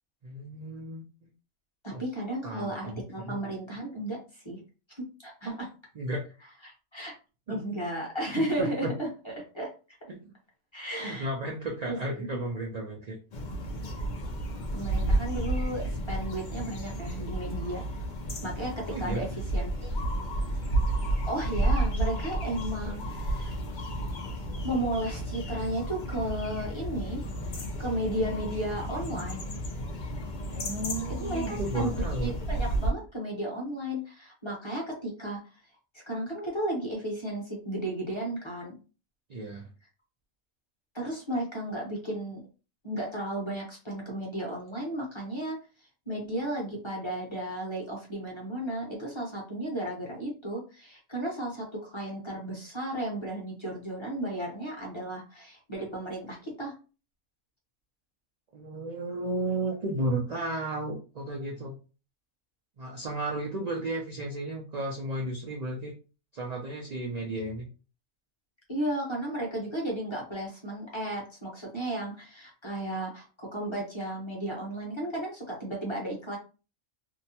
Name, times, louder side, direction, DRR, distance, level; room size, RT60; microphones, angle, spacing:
voice 1, 0.2-1.3 1.9-2.0 2.4-3.4 5.4-5.6 5.9-6.2 7.5-7.6 8.6-8.9 10.1-10.3 11.0-13.2 18.9-19.2 30.5-32.3 39.3-39.7 58.5-61.7 62.8-65.9 66.3-67.7, right 2 dB, 50° right, -1 dB, 0.4 m, -33 dB
voice 2, 1.8-4.6 4.9-5.5 6.6-7.1 7.5-10.0 10.7-11.3 11.9-12.4 14.7-17.8 18.4-19.3 19.5-19.9 21.3-23.6 24.6-27.2 27.8-29.5 31.2-31.9 32.2-35.4 35.9-38.8 40.9-42.4 42.8-45.6 46.1-56.7 68.7-76.4, right 1 dB, 25° left, -3 dB, 0.8 m, -34 dB
sound 1, 13.3-32.9, right 1 dB, 55° left, 0.5 m, -32 dB
2.7 x 2.2 x 2.7 m, 0.34 s
omnidirectional pair, 1.3 m